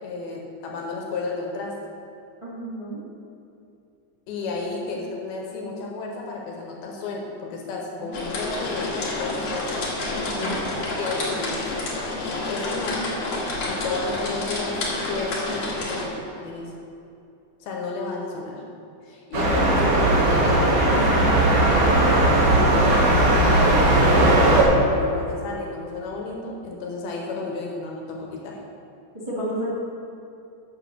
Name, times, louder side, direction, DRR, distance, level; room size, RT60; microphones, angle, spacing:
voice 1, 0.0-1.7 4.3-9.7 11.0-13.1 13.7-16.7 17.6-18.6 19.0-22.2 22.5-23.3 23.8-28.6, left 3 dB, 70° left, -1 dB, 2.8 m, -32 dB
voice 2, 2.4-3.0 7.9-8.1 10.1-10.6 29.3-29.7, equal, 35° right, -8 dB, 0.4 m, -31 dB
sound 1, 8.1-16.1, left 2 dB, 55° left, 1.8 m, -29 dB
sound 2, 19.3-24.6, right 1 dB, 65° right, 1.4 m, -18 dB
8.2 x 7.7 x 6.4 m, 2.6 s
omnidirectional pair, 5.0 m